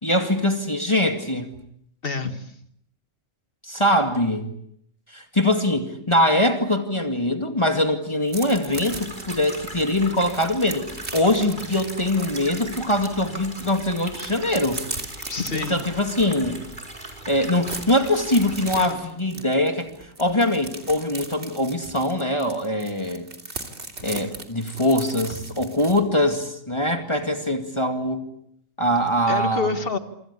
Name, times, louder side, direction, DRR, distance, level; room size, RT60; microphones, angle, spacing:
voice 1, 0.0-1.5 3.6-4.5 5.1-14.8 15.5-16.6 17.3-23.3 24.0-28.2 28.8-29.7, left 1 dB, 20° left, 5 dB, 2.3 m, -23 dB
voice 2, 2.0-2.6 15.3-15.9 29.3-30.0, left 4 dB, 45° left, 9 dB, 2.0 m, -27 dB
sound 1, 8.3-13.1 13.4-16.3 16.7-16.8 17.1-26.0, right 2 dB, 55° right, 3.4 m, -37 dB
sound 2, 8.7-18.9, right 1 dB, 35° right, 5.7 m, -39 dB
27.5 x 25.5 x 8.4 m, 0.73 s
omnidirectional pair, 1.3 m